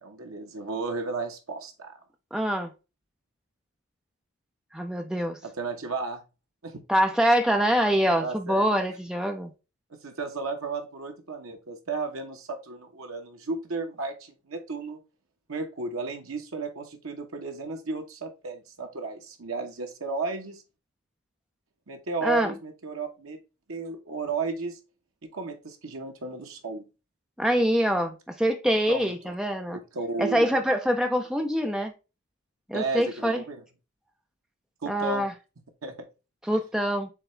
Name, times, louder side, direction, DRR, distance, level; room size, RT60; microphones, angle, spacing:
voice 1, 0.0-1.9 5.4-6.2 6.6-6.8 8.2-8.7 9.9-15.0 15.5-20.6 21.9-23.4 23.7-24.8 25.3-26.8 28.9-29.3 29.7-30.5 32.7-33.6 34.8-35.3 35.8-36.1, right 4 dB, 80° right, 1.0 m, -34 dB
voice 2, 2.3-2.7 4.7-5.4 6.9-9.5 22.2-22.5 27.4-29.8 30.2-31.9 32.7-33.4 34.9-35.3 36.5-37.1, equal, 5° right, 0.6 m, -25 dB
7.0 x 2.4 x 3.2 m
head